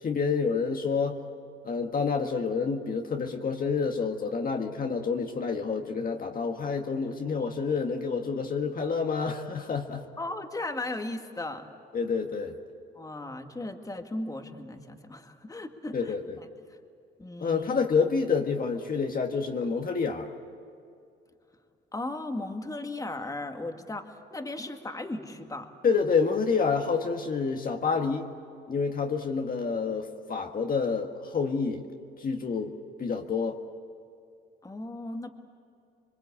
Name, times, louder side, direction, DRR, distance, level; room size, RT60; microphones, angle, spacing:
voice 1, 0.0-1.2 1.6-10.1 11.9-12.6 15.9-16.4 17.4-20.3 25.8-28.3 28.7-31.9 32.2-33.6, left 5 dB, 45° left, 3 dB, 1.7 m, -28 dB
voice 2, 10.2-11.7 13.0-16.1 17.2-17.7 21.9-25.7 34.6-35.3, left 2 dB, 15° left, 5 dB, 2.0 m, -36 dB
27.0 x 23.0 x 8.4 m, 2.4 s
cardioid pair, 90°, 20 cm